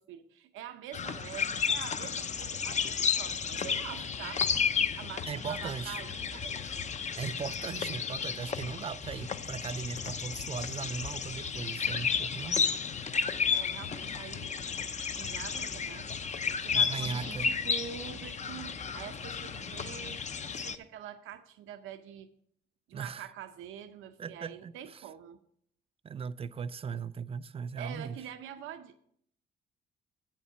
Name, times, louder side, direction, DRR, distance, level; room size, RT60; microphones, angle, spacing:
voice 1, 0.0-4.5 5.0-6.8 13.5-14.6 15.2-16.1 16.6-22.3 22.9-25.4 27.8-29.0, right 10 dB, 85° right, 0.6 m, -45 dB
sound 1, 0.9-20.8, left 6 dB, 35° left, 0.6 m, -33 dB
voice 2, 5.3-6.0 7.1-12.7 16.7-17.5 22.9-23.3 24.2-25.0 26.0-28.2, right 6 dB, 30° right, 0.4 m, -38 dB
8.1 x 7.2 x 5.8 m
cardioid pair, 90°, 20 cm